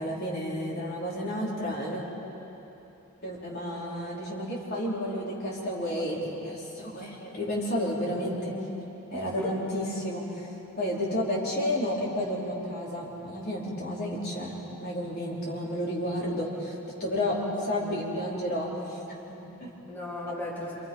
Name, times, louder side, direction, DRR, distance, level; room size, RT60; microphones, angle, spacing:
voice 1, 0.0-2.1 3.2-8.5 9.1-10.5 10.8-19.0 19.3-19.7, left 1 dB, 45° left, -5 dB, 4.7 m, -31 dB
voice 2, 9.1-9.6 17.3-18.1 19.9-20.7, left 1 dB, 10° left, -7 dB, 3.7 m, -37 dB
28.0 x 27.5 x 5.7 m, 3.0 s
head